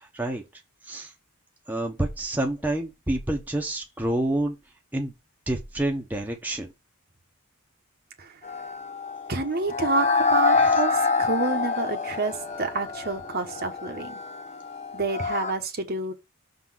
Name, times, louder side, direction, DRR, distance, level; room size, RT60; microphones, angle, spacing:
voice 1, 1.7-4.6 4.9-5.1 5.5-6.7, right 1 dB, 10° right, 1.1 m, -28 dB
sound 1, 8.4-15.5, left 4 dB, 30° left, 0.9 m, -26 dB
voice 2, 9.3-14.2 14.9-16.1, right 3 dB, 45° right, 1.2 m, -29 dB
6.5 x 4.0 x 6.3 m
head